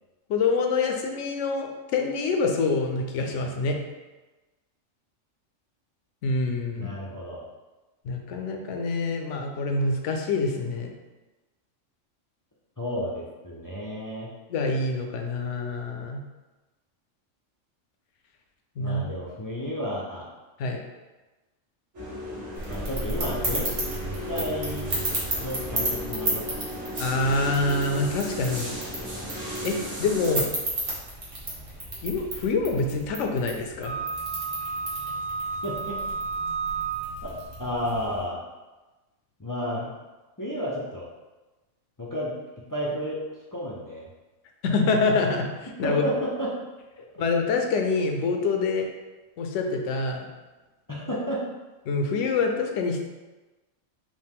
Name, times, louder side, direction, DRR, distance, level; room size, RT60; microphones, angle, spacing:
voice 1, 0.3-3.8 6.2-6.9 8.0-10.9 14.5-16.2 18.8-19.0 20.6-20.8 27.0-28.7 29.6-30.5 32.0-33.9 44.6-45.5 45.8-46.0 47.2-48.9 49.4-50.3 51.9-53.1, left 3 dB, 75° left, 3 dB, 0.9 m, -26 dB
voice 2, 6.7-7.4 12.8-14.3 18.8-20.3 22.7-23.7 24.2-25.0 25.4-26.8 35.6-36.0 37.6-38.4 39.4-39.9 40.4-41.1 42.0-42.3 42.7-43.2 43.5-44.1 45.8-46.5 50.9-51.4, equal, 30° left, -6 dB, 0.3 m, -31 dB
sound 1, 21.9-30.3, left 1 dB, 80° right, 1.8 m, -35 dB
sound 2, 22.5-38.2, right 1 dB, 45° right, 1.5 m, -34 dB
Wind instrument woodwind instrument, 33.8-37.4, right 5 dB, 25° right, 0.8 m, -32 dB
5.2 x 2.2 x 3.5 m, 1.1 s
omnidirectional pair, 1.3 m